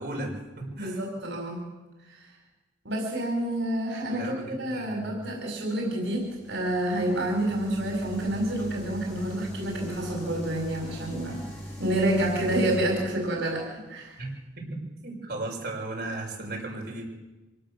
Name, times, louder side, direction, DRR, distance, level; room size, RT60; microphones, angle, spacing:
voice 1, 0.0-1.0 4.1-5.2 14.2-14.3 14.6-17.1, right 2 dB, 55° right, -2 dB, 6.2 m, -36 dB
voice 2, 0.7-1.6 2.1-2.3 2.8-11.4 11.8-14.2, right 1 dB, 85° right, 0 dB, 5.0 m, -28 dB
sound 1, 6.1-12.8, equal, 15° left, 7.0 m, -41 dB
25.0 x 18.0 x 6.8 m, 1.1 s
head